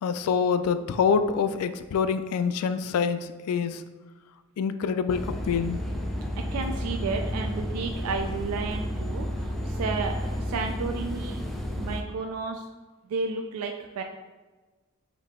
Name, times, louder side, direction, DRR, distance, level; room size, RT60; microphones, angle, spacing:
voice 1, 0.0-3.8 4.6-5.8, left 6 dB, 85° left, 12 dB, 0.3 m, -26 dB
sound 1, 5.1-12.0, equal, ahead, 0.3 m, -31 dB
voice 2, 6.5-11.4 11.7-12.7 13.1-14.0, right 4 dB, 85° right, 4 dB, 0.4 m, -32 dB
5.1 x 2.7 x 3.6 m, 1.2 s
head